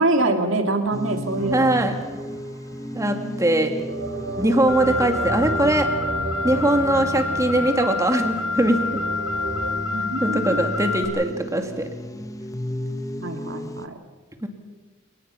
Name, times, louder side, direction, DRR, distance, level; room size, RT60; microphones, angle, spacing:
voice 1, 0.0-1.7 4.8-4.9 9.9-10.7 13.2-14.0, right 2 dB, 70° right, 5 dB, 2.7 m, -24 dB
sound 1, 0.9-13.9, equal, 15° left, 0.9 m, -34 dB
sound 2, 1.4-3.1 3.8-9.7, right 3 dB, 90° right, 3.4 m, -34 dB
voice 2, 1.5-2.0 2.9-3.7 4.4-5.9 6.4-9.0 10.2-11.9 14.4-14.5, right 1 dB, 15° right, 5 dB, 2.2 m, -21 dB
Car, 4.7-11.1, left 4 dB, 85° left, 4.9 m, -28 dB
30.0 x 18.5 x 5.8 m, 1.3 s
head